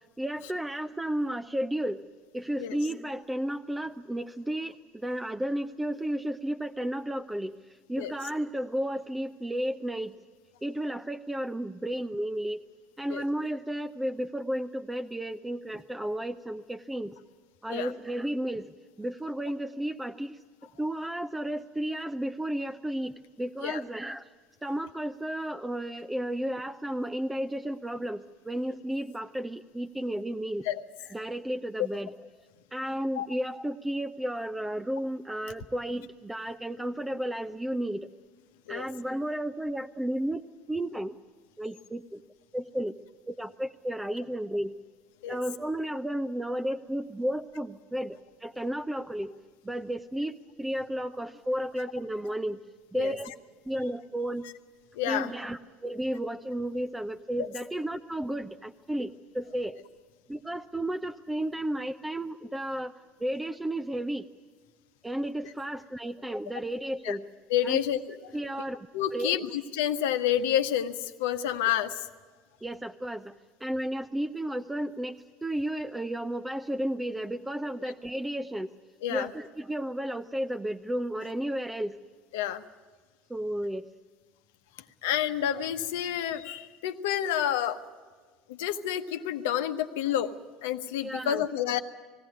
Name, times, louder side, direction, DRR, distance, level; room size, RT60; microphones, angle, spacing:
voice 1, 0.2-2.0 2.3-10.2 10.6-12.6 13.0-17.1 17.6-20.4 20.8-24.3 24.6-30.7 31.1-32.1 32.7-38.1 38.7-41.2 41.6-42.2 42.5-42.9 43.3-44.7 45.3-49.3 49.6-52.6 52.9-53.3 53.6-54.5 55.0-59.8 60.3-64.3 65.0-67.2 67.6-67.8 68.3-69.4 71.6-71.7 72.6-73.3 73.6-78.7 79.1-82.0 83.3-83.9 91.0-91.5, right 1 dB, 10° right, 7 dB, 0.6 m, -33 dB
voice 2, 54.9-55.3 57.4-57.5 67.0-67.2 67.5-68.2 68.9-72.0 79.0-79.3 82.3-82.6 85.0-87.8 88.5-90.3 90.6-91.8, left 10 dB, 65° left, 8 dB, 1.0 m, -29 dB
20.5 x 16.5 x 9.5 m, 1.5 s
figure-of-eight pair, 70°, 0 cm